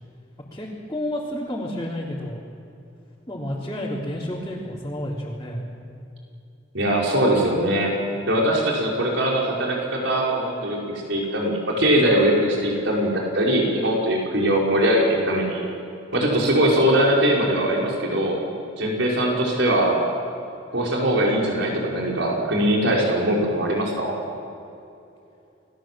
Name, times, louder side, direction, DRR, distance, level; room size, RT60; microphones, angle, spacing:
voice 1, 0.5-2.4 3.3-5.6, left 1 dB, 20° left, -7 dB, 3.7 m, -30 dB
voice 2, 6.7-7.9 8.3-15.6 16.1-18.4 18.8-20.0 20.7-24.1, right 1 dB, 90° right, -2 dB, 5.5 m, -21 dB
30.0 x 20.5 x 7.7 m, 2.7 s
head